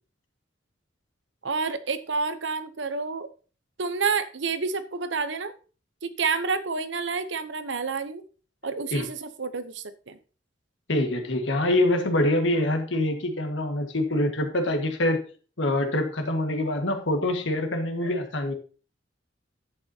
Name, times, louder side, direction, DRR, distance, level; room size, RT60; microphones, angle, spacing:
voice 1, 1.4-3.3 3.8-5.5 6.0-8.2 8.6-10.2, right 4 dB, 70° right, 11 dB, 0.9 m, -29 dB
voice 2, 10.9-15.2 15.6-18.5, left 1 dB, 80° left, 5 dB, 1.7 m, -25 dB
10.5 x 8.3 x 2.9 m, 0.37 s
head